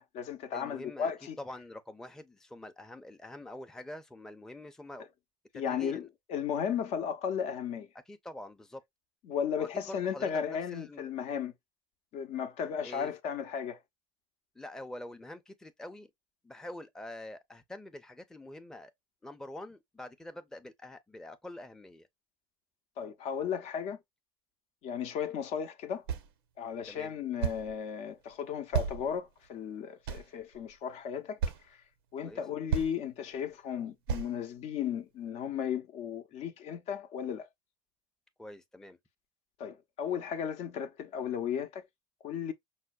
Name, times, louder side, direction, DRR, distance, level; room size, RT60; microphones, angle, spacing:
voice 1, 0.0-1.4 5.5-7.9 9.3-11.5 12.1-13.8 23.0-24.0 24.8-26.0 26.6-31.4 31.7-31.8 32.1-37.5 39.6-41.9 42.2-42.5, left 8 dB, 60° left, 0.6 m, -35 dB
voice 2, 0.5-1.1 1.4-5.1 5.5-6.1 8.1-8.8 9.6-11.1 12.8-13.1 14.5-16.1 16.4-18.9 19.2-22.1 26.8-27.1 32.2-32.4 38.4-39.0, left 1 dB, 5° left, 0.5 m, -45 dB
sound 1, 26.1-26.3 27.4-27.7 28.7-29.5 30.1-30.7 31.4-31.6 32.3-32.4 32.7-32.9 34.1-34.3, right 7 dB, 85° right, 0.6 m, -32 dB
5.5 x 2.1 x 2.2 m
hypercardioid pair, 85°, 12 cm